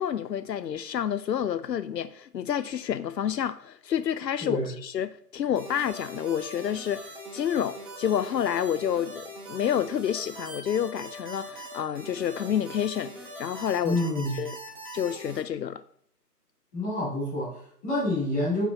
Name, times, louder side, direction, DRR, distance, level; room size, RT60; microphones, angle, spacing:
voice 1, 0.0-14.0 14.4-14.6 14.9-15.8, left 9 dB, 80° left, 0.6 m, -29 dB
voice 2, 4.4-4.7 13.8-14.4 16.7-18.6, left 1 dB, 10° left, 2.7 m, -28 dB
sound 1, 5.6-15.4, right 1 dB, 30° right, 1.7 m, -42 dB
5.9 x 5.7 x 4.2 m
figure-of-eight pair, 165°, 49 cm